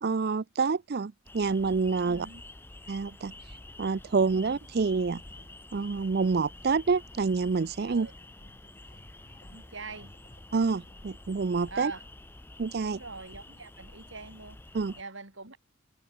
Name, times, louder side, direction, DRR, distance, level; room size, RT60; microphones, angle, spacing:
voice 1, 0.0-2.3 2.9-3.3 3.8-5.2 5.7-8.1 10.5-11.9 12.6-13.0 14.7-14.9, right 4 dB, 50° right, 0.4 m, -27 dB
sound 1, 1.2-15.0, left 2 dB, 10° left, 0.6 m, -49 dB
voice 2, 2.0-2.4 4.3-4.6 7.9-8.1 9.5-10.1 11.7-12.1 12.8-15.6, right 3 dB, 65° right, 4.5 m, -43 dB
sound 2, 3.6-12.0, left 1 dB, 40° left, 4.7 m, -59 dB
head